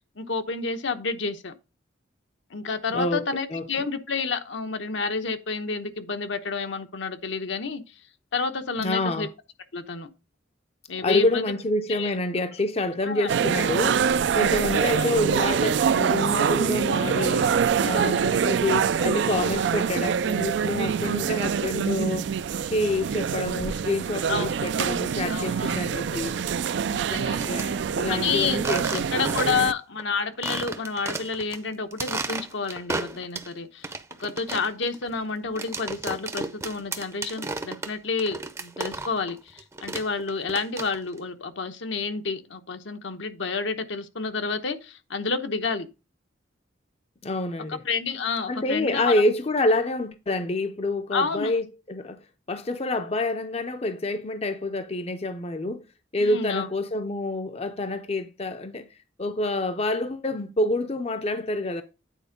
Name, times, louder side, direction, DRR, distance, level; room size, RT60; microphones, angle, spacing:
voice 1, 0.2-1.5 2.5-7.8 8.3-9.3 9.7-10.1 10.9-11.5 11.9-12.1 13.0-13.3 14.5-15.1 18.0-18.4 24.3-24.5 25.3-25.8 26.9-27.5 28.1-28.6 29.1-33.9 34.2-45.9 47.7-49.1 51.1-51.5 56.2-56.7, left 4 dB, 75° left, 0.9 m, -29 dB
voice 2, 2.9-3.3 3.5-3.7 8.8-9.3 11.0-14.1 14.3-17.5 17.8-22.3 22.7-26.3 27.4-29.2 47.2-47.8 48.5-52.2 52.5-55.8 56.1-58.9 59.2-61.8, left 2 dB, 30° left, 0.5 m, -27 dB
sound 1, 13.3-29.7, right 7 dB, 65° right, 0.3 m, -25 dB
sound 2, 27.1-27.7 28.6-29.7 30.0-30.1 30.4-31.6 31.9-33.5 33.8-39.3 39.6-41.2, right 3 dB, 15° right, 0.6 m, -34 dB
9.2 x 4.4 x 5.1 m
head